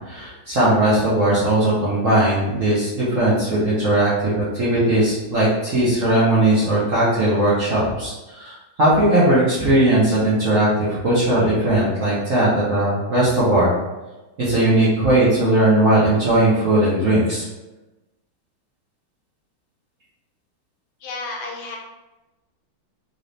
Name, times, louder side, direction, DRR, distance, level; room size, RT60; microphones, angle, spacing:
voice 1, 0.1-13.7 14.4-17.4, right 1 dB, 55° right, -9 dB, 0.9 m, -18 dB
voice 2, 21.0-21.8, left 3 dB, 75° left, -1 dB, 1.4 m, -31 dB
3.9 x 2.7 x 3.3 m, 1.1 s
omnidirectional pair, 2.3 m